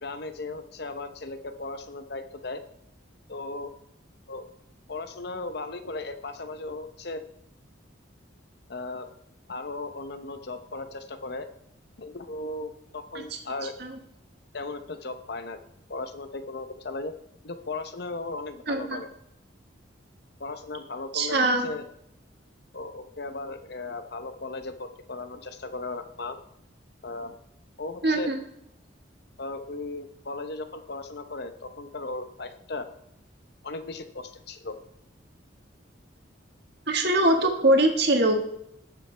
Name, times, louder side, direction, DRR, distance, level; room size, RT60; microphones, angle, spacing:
voice 1, 0.0-2.6 3.3-3.7 4.3-4.5 4.9-7.2 8.7-9.1 9.5-11.5 12.0-13.7 14.5-15.6 15.9-17.1 17.4-19.1 20.4-21.8 22.7-26.4 27.0-27.4 27.8-28.3 29.4-32.9 33.6-34.8, left 3 dB, 55° left, 9 dB, 0.8 m, -36 dB
voice 2, 18.7-19.0 21.1-21.7 28.0-28.4 36.9-38.4, right 1 dB, 55° right, 3 dB, 1.7 m, -22 dB
18.0 x 7.3 x 3.4 m, 0.77 s
head